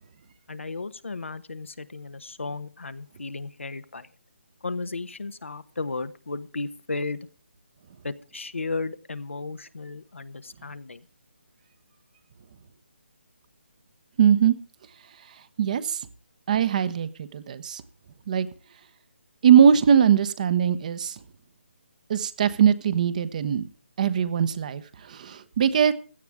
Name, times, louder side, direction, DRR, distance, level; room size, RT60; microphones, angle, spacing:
voice 1, 0.5-4.1 4.6-7.2 8.0-11.0, left 3 dB, 80° left, 12 dB, 1.2 m, -34 dB
voice 2, 14.2-14.5 15.6-16.0 16.5-17.8 18.3-18.5 19.4-21.1 22.1-23.7 24.0-24.8 25.1-25.9, right 8 dB, 35° right, 13 dB, 1.1 m, -20 dB
16.5 x 11.5 x 3.6 m, 0.40 s
figure-of-eight pair, 155°, 7 cm